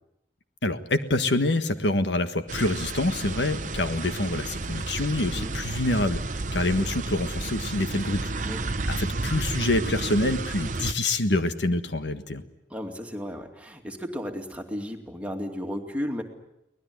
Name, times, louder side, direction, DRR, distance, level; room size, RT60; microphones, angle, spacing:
voice 1, 0.6-8.3 8.9-12.4, left 2 dB, 85° left, 9 dB, 1.5 m, -26 dB
sound 1, 2.5-10.9, right 3 dB, 45° right, 0.9 m, -32 dB
voice 2, 12.7-16.2, equal, 10° right, 2 dB, 2.5 m, -34 dB
23.5 x 19.0 x 9.6 m, 0.85 s
head